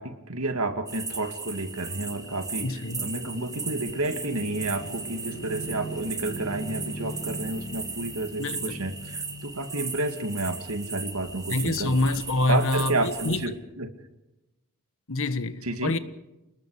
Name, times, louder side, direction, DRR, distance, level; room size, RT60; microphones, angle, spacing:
voice 1, 0.0-11.9 12.5-13.9 15.6-15.9, right 2 dB, 75° right, 2.4 m, -30 dB
sound 1, 0.9-13.5, right 5 dB, 15° right, 2.0 m, -37 dB
sound 2, 1.4-10.5, right 1 dB, 45° left, 6.3 m, -41 dB
voice 2, 2.6-3.0 8.4-8.8 11.5-13.4 15.1-16.0, left 2 dB, 65° left, 1.5 m, -26 dB
29.0 x 20.0 x 5.0 m
head